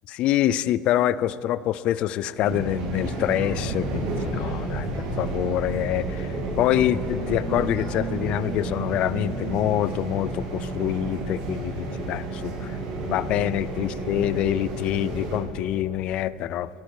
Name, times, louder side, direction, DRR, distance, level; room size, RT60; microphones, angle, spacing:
voice 1, 0.1-16.7, left 12 dB, 55° left, 18 dB, 0.4 m, -26 dB
sound 1, 2.4-15.4, right 2 dB, 75° right, 2.8 m, -31 dB
15.0 x 13.0 x 4.8 m, 2.9 s
supercardioid pair, 110°, 2 cm